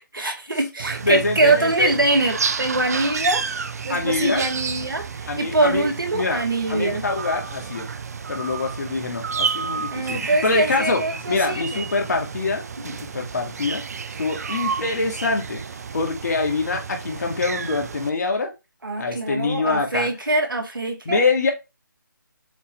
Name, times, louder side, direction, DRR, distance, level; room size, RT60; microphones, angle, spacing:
voice 1, 0.1-3.4 3.8-7.0 9.9-11.9 18.8-21.2, right 2 dB, 85° right, 2.1 m, -23 dB
sound 1, 0.8-18.1, right 5 dB, 50° right, 0.7 m, -31 dB
voice 2, 1.0-1.9 3.9-4.5 5.3-6.4 6.7-7.9 8.3-13.8 14.2-15.6 15.9-18.5 19.0-20.1 21.1-21.5, left 3 dB, 55° left, 2.2 m, -25 dB
7.3 x 4.1 x 3.3 m
figure-of-eight pair, 155°, 11 cm